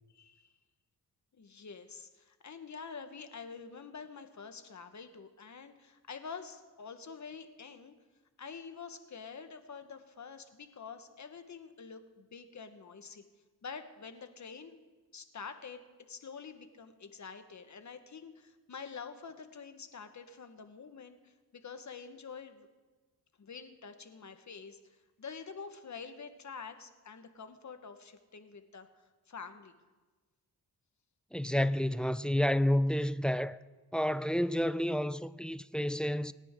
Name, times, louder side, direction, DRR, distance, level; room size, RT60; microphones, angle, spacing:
voice 1, 0.1-0.5 1.3-7.9 8.4-13.2 13.6-14.8 15.1-15.8 16.1-22.7 23.4-28.9 29.3-29.7, left 5 dB, 50° left, 1.4 m, -47 dB
voice 2, 31.3-33.6 33.9-36.3, equal, ahead, 0.4 m, -30 dB
27.5 x 9.9 x 3.8 m
cardioid pair, 75°, 36 cm